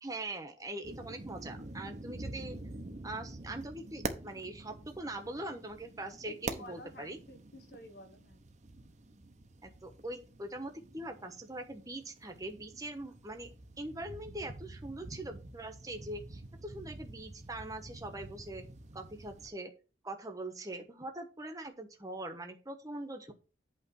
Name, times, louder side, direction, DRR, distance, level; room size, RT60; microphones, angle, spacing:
voice 1, 0.0-2.6 3.0-7.2 9.6-19.7 20.0-23.3, right 2 dB, 20° right, 5 dB, 1.2 m, -42 dB
sound 1, 0.8-19.5, right 2 dB, 40° right, 0.8 m, -46 dB
voice 2, 6.3-8.5, equal, 65° left, 8 dB, 1.2 m, -51 dB
8.2 x 3.3 x 6.3 m, 0.35 s
head